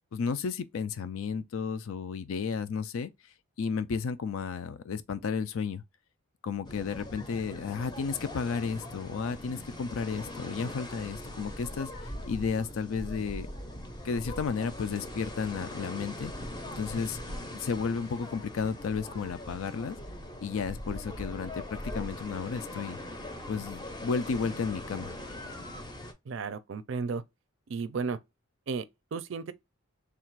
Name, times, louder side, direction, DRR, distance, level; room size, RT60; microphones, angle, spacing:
voice 1, 0.1-3.1 3.6-5.8 6.4-13.5 14.0-16.3 16.8-17.2 17.5-20.0 20.4-23.0 23.5-25.1, left 5 dB, 75° left, 0.4 m, -33 dB
sound 1, 6.6-26.1, left 1 dB, 20° left, 0.6 m, -41 dB
voice 2, 26.3-27.2 27.7-28.2 28.7-28.8 29.1-29.5, right 5 dB, 60° right, 0.4 m, -33 dB
3.4 x 2.4 x 4.5 m
head